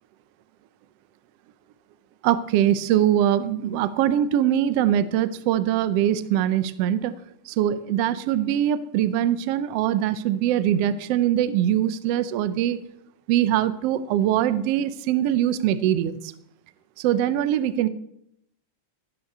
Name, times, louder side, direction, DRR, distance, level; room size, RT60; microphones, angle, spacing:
voice 1, 2.2-7.1 7.5-12.8 13.3-16.3 17.0-17.9, right 11 dB, 80° right, 14 dB, 1.4 m, -22 dB
16.5 x 6.0 x 6.6 m, 0.75 s
omnidirectional pair, 3.5 m